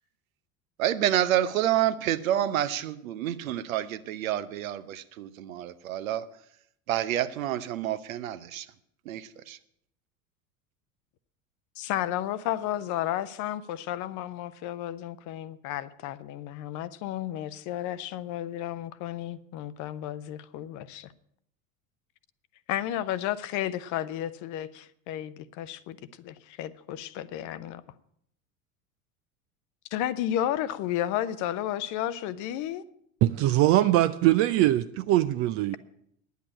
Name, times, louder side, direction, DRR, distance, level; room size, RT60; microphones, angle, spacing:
voice 1, 0.8-6.3 6.9-8.7 9.1-9.6, right 12 dB, 65° right, 0.8 m, -28 dB
voice 2, 11.8-21.1 22.7-27.8 29.9-32.8, left 12 dB, 45° left, 0.7 m, -32 dB
voice 3, 33.2-35.8, right 15 dB, 35° right, 0.4 m, -22 dB
10.5 x 8.2 x 8.8 m
figure-of-eight pair, 75°, 43 cm